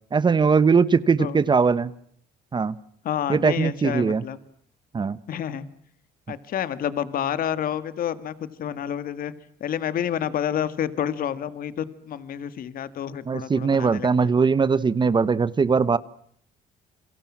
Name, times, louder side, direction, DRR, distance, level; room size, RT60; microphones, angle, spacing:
voice 1, 0.1-1.9 2.5-2.7 3.3-4.2 4.9-5.2 13.3-16.0, right 5 dB, 25° right, 16 dB, 1.1 m, -20 dB
voice 2, 3.0-4.4 5.3-5.7 6.3-9.3 9.6-14.3, left 9 dB, 60° left, 14 dB, 1.9 m, -29 dB
30.0 x 23.5 x 7.4 m, 0.63 s
cardioid pair, 110°, 17 cm